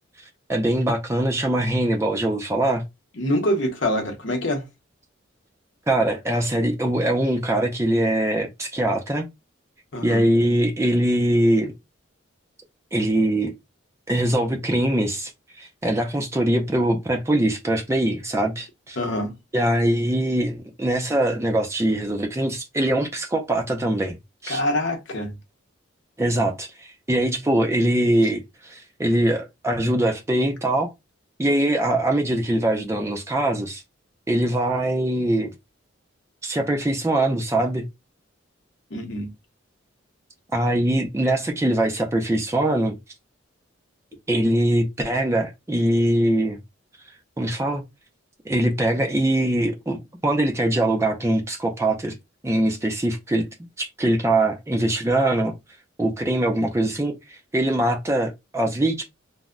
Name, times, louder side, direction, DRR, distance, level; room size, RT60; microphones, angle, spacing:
voice 1, 0.5-2.8 5.9-9.3 10.0-11.7 12.9-13.5 14.1-15.3 15.6-19.0 19.5-24.2 24.4-24.6 26.2-30.9 31.4-33.8 34.3-35.5 36.4-37.8 40.5-43.0 44.3-46.6 47.4-47.8 48.5-52.1 52.4-53.5 53.8-55.5 56.0-59.0, right 1 dB, 15° right, 0.4 m, -22 dB
voice 2, 3.2-4.7 9.9-10.2 19.0-19.4 24.5-25.4 38.9-39.3, left 1 dB, 60° left, 0.7 m, -25 dB
2.1 x 2.0 x 3.6 m
head